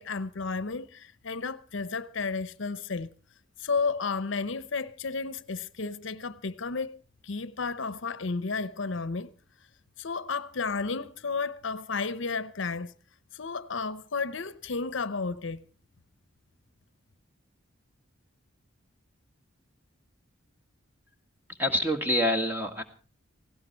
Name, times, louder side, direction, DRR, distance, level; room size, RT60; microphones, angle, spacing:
voice 1, 0.0-3.1 3.6-9.3 10.0-12.9 13.3-15.6, left 4 dB, 65° left, 0.8 m, -32 dB
voice 2, 21.5-22.8, equal, 10° right, 1.8 m, -26 dB
18.0 x 16.5 x 4.5 m
head